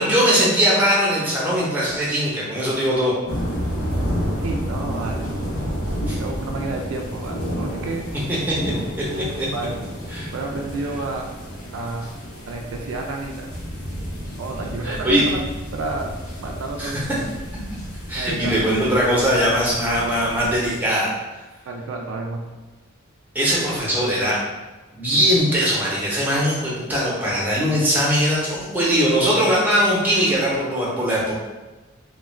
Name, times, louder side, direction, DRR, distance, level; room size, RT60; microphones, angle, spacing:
voice 1, 0.0-3.1 6.1-6.2 8.5-8.6 9.4-9.5 10.1-10.3 14.8-15.2 16.8-16.9 18.1-21.1 23.3-24.4 24.9-31.3, equal, 10° right, -6 dB, 0.7 m, -20 dB
sound 1, 3.3-20.8, equal, 70° left, 0.8 m, -30 dB
voice 2, 4.4-5.3 6.2-8.1 9.1-9.7 10.3-11.3 11.7-12.1 12.5-13.5 14.4-15.4 15.7-16.1 16.4-17.2 18.1-18.6 20.1-20.2 21.6-22.4, right 3 dB, 70° right, 2 dB, 0.3 m, -30 dB
2.3 x 2.1 x 3.2 m, 1.2 s
head